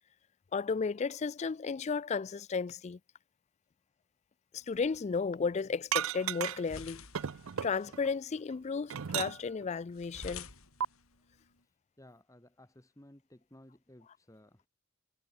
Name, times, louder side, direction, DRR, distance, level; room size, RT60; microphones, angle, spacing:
voice 1, 0.5-3.0 4.5-7.0 7.6-10.5, left 5 dB, 30° left, 0.3 m, -34 dB
sound 1, 4.6-11.6, left 5 dB, 75° left, 6.2 m, -52 dB
sound 2, 5.9-6.8 7.1-8.1 8.5-9.6 10.8-10.9, right 9 dB, 70° right, 0.5 m, -34 dB
voice 2, 12.0-14.7, left 1 dB, 15° left, 1.6 m, -57 dB
head